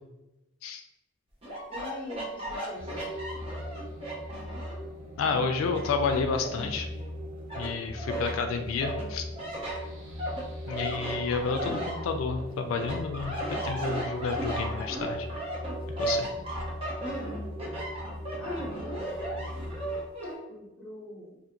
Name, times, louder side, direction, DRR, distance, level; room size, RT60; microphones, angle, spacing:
sound 1, 1.4-4.9 5.3-7.1 7.5-8.4 8.8-12.4 12.8-20.4, right 1 dB, 30° right, 0.6 m, -35 dB
voice 1, 1.7-3.2 16.1-16.5 18.4-19.1 20.5-21.4, left 1 dB, 5° left, -7 dB, 0.8 m, -44 dB
sound 2, 2.7-20.0, left 1 dB, 75° right, 0.6 m, -40 dB
voice 2, 5.2-6.9 7.5-9.3 10.7-15.3 16.0-16.3, left 4 dB, 90° left, 6 dB, 0.3 m, -30 dB
2.5 x 2.5 x 2.8 m, 0.99 s
head